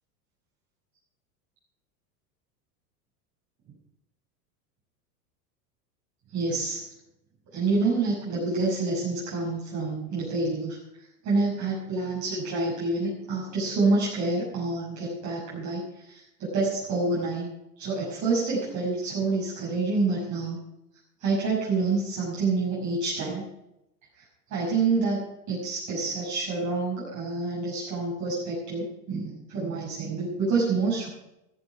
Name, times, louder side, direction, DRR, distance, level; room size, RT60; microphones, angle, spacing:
voice 1, 6.3-6.8 7.5-17.5 17.8-20.6 21.2-23.4 24.2-24.3 24.5-31.1, right 3 dB, 40° right, -7 dB, 6.3 m, -27 dB
15.0 x 11.5 x 4.7 m, 0.88 s
hypercardioid pair, 100°, 47 cm